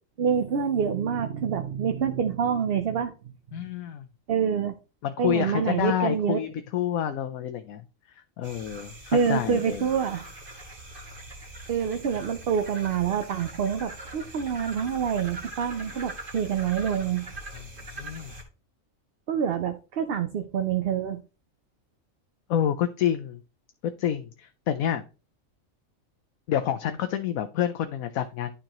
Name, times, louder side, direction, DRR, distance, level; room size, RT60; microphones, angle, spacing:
voice 1, 0.2-3.1 3.5-3.6 4.3-4.7 5.2-6.4 9.1-10.2 11.7-17.2 19.3-21.2, right 7 dB, 55° right, 8 dB, 0.7 m, -26 dB
voice 2, 3.5-4.1 5.0-9.9 17.9-18.3 22.5-23.4 23.8-25.0 26.5-28.6, left 10 dB, 90° left, 7 dB, 1.1 m, -28 dB
sound 1, 8.4-18.4, right 1 dB, 40° right, 2.0 m, -42 dB
11.5 x 4.8 x 3.0 m, 0.32 s
omnidirectional pair, 1.4 m